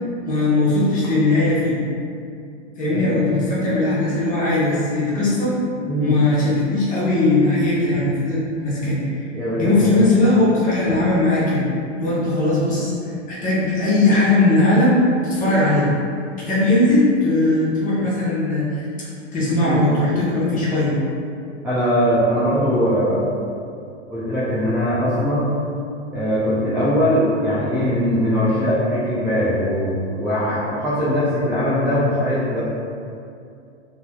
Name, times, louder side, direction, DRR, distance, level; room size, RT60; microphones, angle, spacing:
voice 1, 0.2-1.8 2.8-5.5 6.0-9.3 9.6-11.6 12.0-15.9 16.4-21.0, left 2 dB, 20° left, -8 dB, 0.9 m, -19 dB
voice 2, 5.8-6.2 7.9-8.0 9.3-9.9 19.6-19.9 21.6-23.2 24.1-25.5 26.1-32.6, equal, 5° right, -12 dB, 0.4 m, -21 dB
3.4 x 2.7 x 2.2 m, 2.5 s
hypercardioid pair, 120°, 36 cm